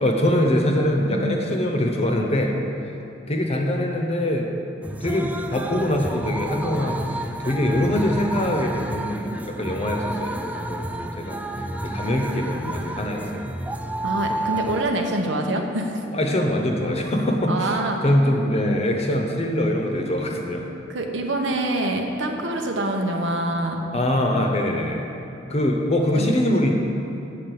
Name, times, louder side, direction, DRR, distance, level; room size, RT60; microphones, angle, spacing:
voice 1, 0.0-2.9 3.3-4.5 5.0-11.4 11.8-13.2 16.1-20.7 23.9-25.0 25.5-26.7, left 1 dB, 35° left, 2 dB, 0.8 m, -23 dB
voice 2, 1.1-1.4 14.0-16.0 17.5-18.0 20.9-23.8 26.1-26.6, right 1 dB, 90° right, 3 dB, 0.9 m, -25 dB
sound 1, 4.8-14.8, right 1 dB, 10° right, 0.3 m, -31 dB
7.7 x 5.2 x 7.0 m, 2.9 s
head